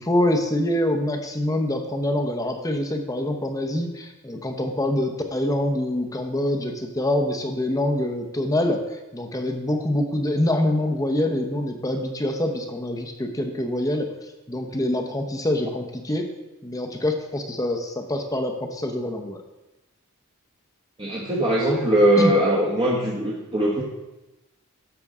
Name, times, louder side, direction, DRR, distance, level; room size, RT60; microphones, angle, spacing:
voice 1, 0.0-16.3 16.6-19.4 22.2-22.3, left 1 dB, 15° left, 3 dB, 0.8 m, -25 dB
voice 2, 21.0-23.8, right 1 dB, 25° right, -4 dB, 1.1 m, -20 dB
13.0 x 6.7 x 3.6 m, 1.0 s
head